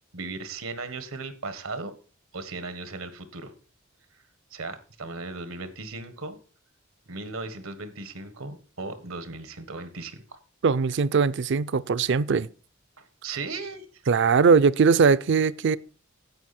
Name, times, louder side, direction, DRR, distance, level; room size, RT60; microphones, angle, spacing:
voice 1, 0.1-1.9 2.3-3.5 4.5-6.4 7.1-10.4 13.0-14.0, right 3 dB, 90° right, 1.6 m, -37 dB
voice 2, 10.6-12.5 14.1-15.8, right 5 dB, 60° right, 0.5 m, -20 dB
10.5 x 8.1 x 4.3 m
head